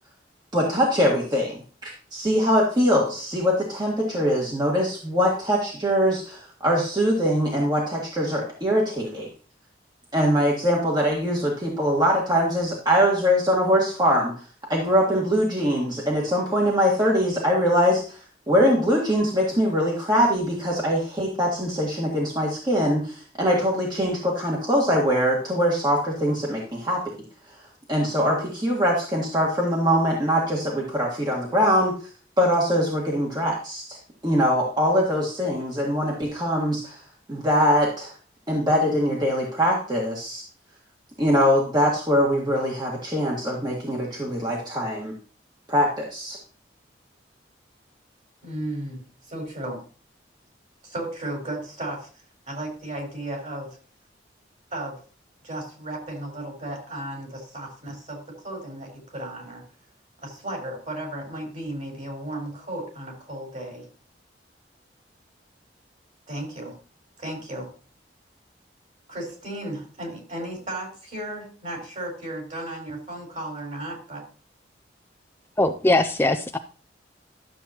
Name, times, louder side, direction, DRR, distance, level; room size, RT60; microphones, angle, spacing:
voice 1, 0.5-9.3 10.1-14.3 14.7-18.2 18.5-27.0 27.9-32.0 32.4-34.0 34.2-37.0 37.3-38.1 38.5-40.4 41.2-45.1 45.7-46.4, equal, 25° right, -3 dB, 1.7 m, -22 dB
voice 2, 48.4-49.8 50.8-52.1 52.5-53.8 54.7-55.0 55.4-59.6 60.2-63.9 66.3-66.7 67.2-67.7 69.1-74.2, right 1 dB, 40° right, 1 dB, 4.4 m, -34 dB
voice 3, 75.6-76.6, left 2 dB, 15° left, 7 dB, 0.4 m, -21 dB
12.0 x 7.4 x 2.9 m, 0.39 s
head